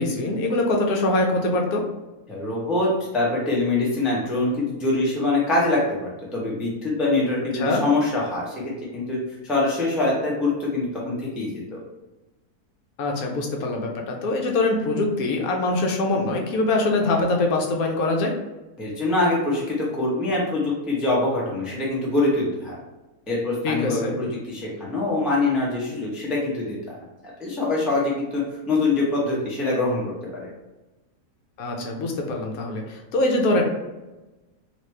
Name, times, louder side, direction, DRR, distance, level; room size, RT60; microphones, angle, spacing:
voice 1, 0.0-1.8 7.5-7.8 13.0-18.4 23.6-24.2 31.6-33.6, left 2 dB, 75° left, 1 dB, 1.0 m, -23 dB
voice 2, 2.3-8.5 8.9-9.2 9.4-11.8 18.8-22.7 23.3-27.0 27.4-30.0 30.3-30.5, left 2 dB, ahead, -5 dB, 0.3 m, -24 dB
3.0 x 2.5 x 3.1 m, 1.1 s
omnidirectional pair, 1.6 m